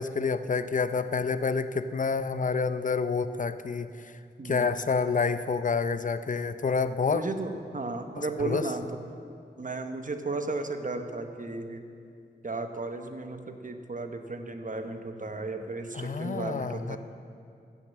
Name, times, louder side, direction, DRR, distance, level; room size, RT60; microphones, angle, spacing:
voice 1, 0.0-4.1 4.4-7.2 8.2-8.6 15.9-17.0, left 5 dB, 45° left, 12 dB, 0.5 m, -28 dB
voice 2, 4.4-4.7 7.1-9.0 9.6-11.8 12.4-17.0, right 3 dB, 45° right, 6 dB, 1.0 m, -34 dB
14.5 x 6.6 x 7.3 m, 2.4 s
wide cardioid pair, 65°, 19 cm